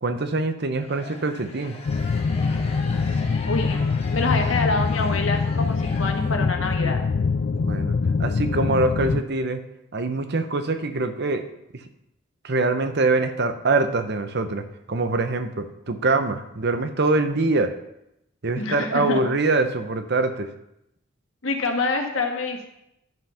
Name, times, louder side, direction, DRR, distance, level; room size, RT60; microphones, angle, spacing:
voice 1, 0.0-1.8 7.6-7.9 8.2-9.6 9.9-11.4 11.7-11.8 12.4-14.6 14.9-17.7 18.4-20.5, right 3 dB, 60° right, 8 dB, 0.9 m, -24 dB
sound 1, 0.8-6.7, left 2 dB, 30° left, 1.4 m, -40 dB
sound 2, 1.9-9.2, left 4 dB, 50° left, 0.3 m, -24 dB
voice 2, 3.5-3.8 4.1-7.0 18.6-19.2 21.4-22.7, left 3 dB, 90° left, 3 dB, 1.7 m, -26 dB
11.0 x 5.6 x 5.7 m, 0.82 s
head